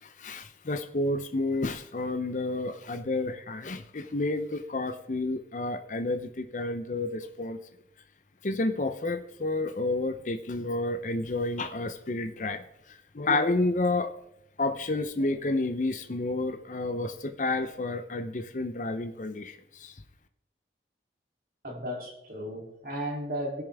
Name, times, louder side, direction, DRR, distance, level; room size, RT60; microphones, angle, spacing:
voice 1, 0.0-7.6 8.4-14.1 14.6-19.9, left 2 dB, 45° left, 9 dB, 0.6 m, -30 dB
voice 2, 21.6-23.6, equal, 50° right, -1 dB, 3.1 m, -35 dB
20.0 x 6.8 x 3.5 m, 0.80 s
head